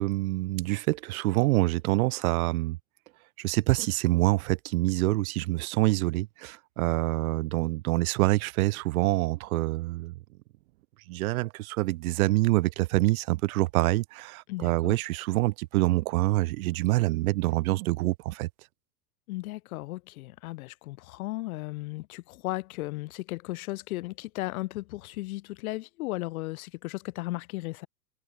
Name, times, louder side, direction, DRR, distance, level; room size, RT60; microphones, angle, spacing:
voice 1, 0.0-2.8 3.4-10.1 11.1-18.5, right 19 dB, 60° right, 0.6 m, -26 dB
voice 2, 14.5-15.0 19.3-27.9, left 19 dB, 60° left, 0.6 m, -35 dB
hypercardioid pair, 95°, 48 cm